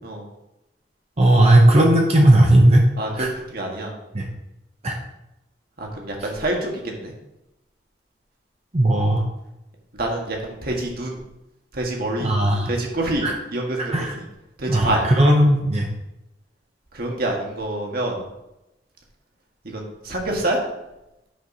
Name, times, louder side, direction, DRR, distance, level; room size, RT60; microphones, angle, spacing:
voice 1, 1.2-2.8 3.2-3.3 4.1-4.2 4.8-4.9 8.7-9.2 12.2-12.7 13.2-13.3 13.8-14.1 14.7-15.9, right 1 dB, 35° right, 0 dB, 0.9 m, -16 dB
voice 2, 3.0-3.9 5.8-7.1 9.9-11.2 11.7-12.3 12.7-13.9 14.6-15.0 16.9-18.2 19.6-20.6, right 1 dB, 55° right, 0 dB, 1.7 m, -26 dB
9.2 x 4.4 x 5.4 m, 0.92 s
head